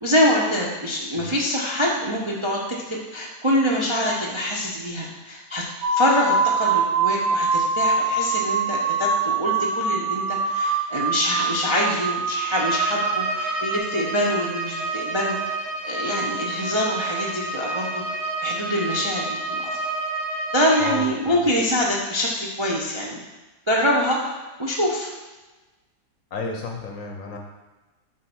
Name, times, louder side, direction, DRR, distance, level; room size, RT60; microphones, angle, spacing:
voice 1, 0.0-2.6 2.9-5.6 5.9-15.4 15.8-18.0 18.4-19.8 20.5-23.2 23.7-25.1, equal, 25° right, -3 dB, 0.6 m, -25 dB
sound 1, 5.8-13.8, right 4 dB, 60° right, 1.0 m, -24 dB
Bowed string instrument, 12.5-21.1, right 2 dB, 80° right, 3.5 m, -29 dB
voice 2, 20.8-21.4 26.3-27.4, left 4 dB, 55° left, 2 dB, 1.1 m, -33 dB
7.5 x 4.1 x 6.1 m, 1.2 s
omnidirectional pair, 1.8 m